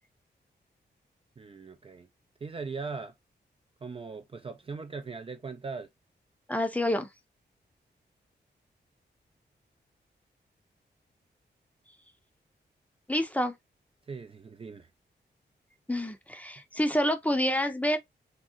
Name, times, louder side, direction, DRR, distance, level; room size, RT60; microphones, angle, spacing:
voice 1, 1.4-2.1 2.4-3.1 3.8-5.9 14.1-14.9, right 4 dB, 30° right, 0.4 m, -39 dB
voice 2, 6.5-7.1 13.1-13.5 15.9-18.0, left 1 dB, 10° left, 0.7 m, -28 dB
3.7 x 2.0 x 2.5 m
cardioid pair, 70°, 18 cm